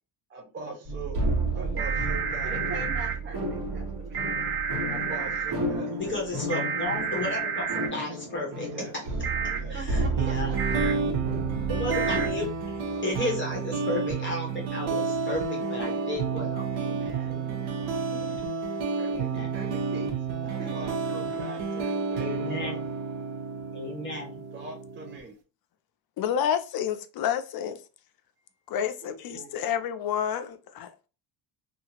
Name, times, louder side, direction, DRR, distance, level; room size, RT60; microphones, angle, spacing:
voice 1, 0.3-1.2 1.5-4.5 4.9-6.2 8.7-11.0 12.9-13.3 15.6-16.5 16.7-18.3 19.0-22.9 24.5-25.4 29.0-29.6, right 4 dB, 25° right, 0.6 m, -43 dB
sound 1, 0.8-12.3, right 2 dB, 45° right, 1.1 m, -32 dB
voice 2, 1.6-2.3 6.0-8.7 9.7-10.5 10.8-12.5 13.0-16.7 17.2-17.8 18.1-18.4 19.1-19.6 22.2-22.8 23.7-24.4, left 2 dB, 25° left, 0.9 m, -34 dB
sound 2, 1.8-3.1 4.1-5.5 6.5-7.9 9.2-9.6 10.6-10.9 11.9-12.3, right 7 dB, 60° right, 1.2 m, -30 dB
sound 3, 10.2-25.2, right 5 dB, 85° right, 0.8 m, -30 dB
voice 3, 26.2-27.8 28.7-31.1, left 9 dB, 55° left, 0.5 m, -29 dB
2.7 x 2.4 x 2.8 m
cardioid pair, 125°, 46 cm